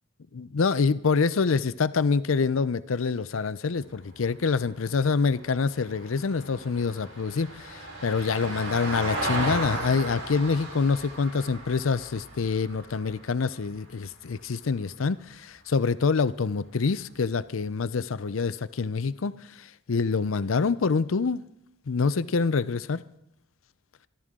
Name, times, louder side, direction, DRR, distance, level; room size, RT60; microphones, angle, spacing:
voice 1, 0.3-19.3 19.9-21.4 21.9-23.0, left 4 dB, 80° left, 0.5 m, -26 dB
Vehicle, 3.9-14.4 16.7-16.8, right 1 dB, 85° right, 4.3 m, -36 dB
26.0 x 12.5 x 3.7 m
head